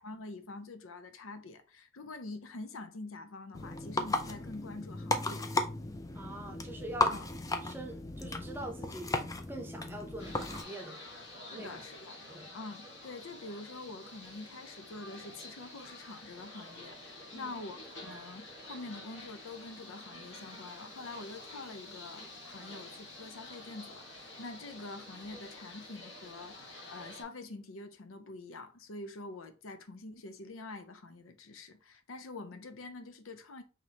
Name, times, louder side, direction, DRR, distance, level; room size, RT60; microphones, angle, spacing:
voice 1, 0.0-5.5 7.1-7.3 11.5-12.2 12.5-33.6, left 2 dB, 80° left, 0.7 m, -46 dB
sound 1, 3.5-10.6, left 2 dB, 15° left, 0.4 m, -35 dB
voice 2, 6.1-7.1 7.6-11.0 11.5-11.9 12.3-12.6 17.3-17.6, right 1 dB, 10° right, 0.7 m, -44 dB
sound 2, 10.2-27.2, left 2 dB, 55° left, 1.6 m, -49 dB
5.8 x 3.1 x 2.8 m
head